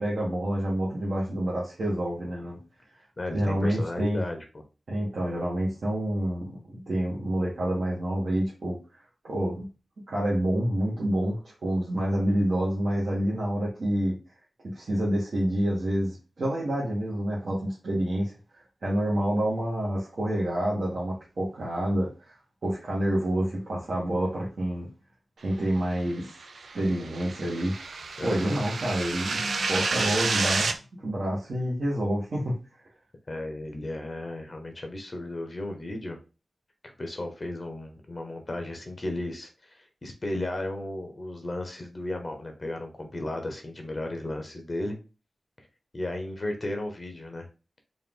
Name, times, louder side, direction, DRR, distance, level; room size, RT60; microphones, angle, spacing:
voice 1, 0.0-2.6 3.3-4.2 4.9-9.0 9.2-9.6 10.1-14.1 14.6-22.4 22.6-24.9 25.4-26.3 26.7-27.7 28.2-32.5, right 1 dB, 65° right, -6 dB, 1.3 m, -28 dB
voice 2, 3.2-4.6 28.2-28.6 33.3-36.2 36.8-45.0 45.9-47.5, left 1 dB, 35° left, 4 dB, 0.8 m, -34 dB
sound 1, 26.3-30.7, right 4 dB, 80° right, 0.5 m, -30 dB
4.0 x 2.5 x 3.6 m, 0.31 s
wide cardioid pair, 125°, 0 cm